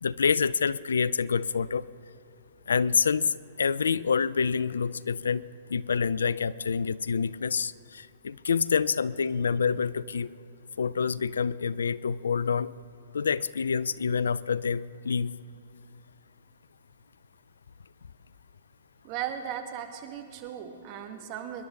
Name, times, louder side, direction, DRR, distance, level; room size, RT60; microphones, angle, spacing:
voice 1, 0.0-1.9 2.7-5.4 5.7-10.3 10.8-12.7 13.1-15.3, left 6 dB, 85° left, 20 dB, 0.4 m, -27 dB
voice 2, 19.0-21.6, right 9 dB, 40° right, 6 dB, 1.9 m, -37 dB
25.5 x 11.5 x 3.9 m, 2.8 s
hypercardioid pair, 125°, 0 cm